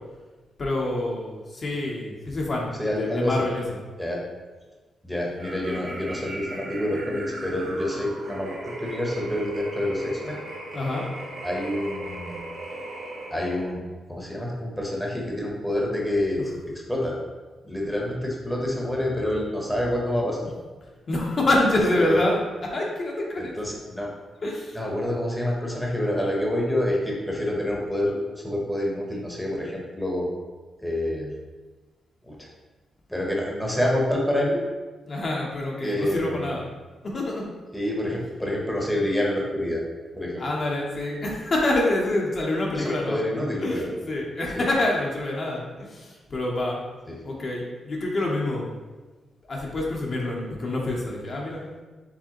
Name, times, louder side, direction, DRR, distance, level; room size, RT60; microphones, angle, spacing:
voice 1, 0.6-2.7 3.0-3.6 10.7-11.1 21.1-23.5 24.4-24.8 35.1-36.6 37.0-37.5 40.4-43.2 43.6-46.8 47.2-48.7 49.5-51.7, left 1 dB, 45° left, -2 dB, 0.7 m, -26 dB
voice 2, 2.8-3.4 4.0-4.2 5.0-8.6 8.8-10.4 11.4-12.4 13.3-13.8 14.1-17.2 17.6-20.5 21.9-22.2 23.4-24.1 24.7-30.3 30.8-31.3 32.2-32.5 33.1-34.6 35.8-36.5 37.7-39.8 40.1-40.4 42.7-43.9 44.5-44.7 47.1-47.2, left 1 dB, 5° left, -2 dB, 0.9 m, -27 dB
sound 1, 5.3-13.7, right 1 dB, 80° right, 0.9 m, -37 dB
4.8 x 3.3 x 2.9 m, 1.3 s
cardioid pair, 105°, 0 cm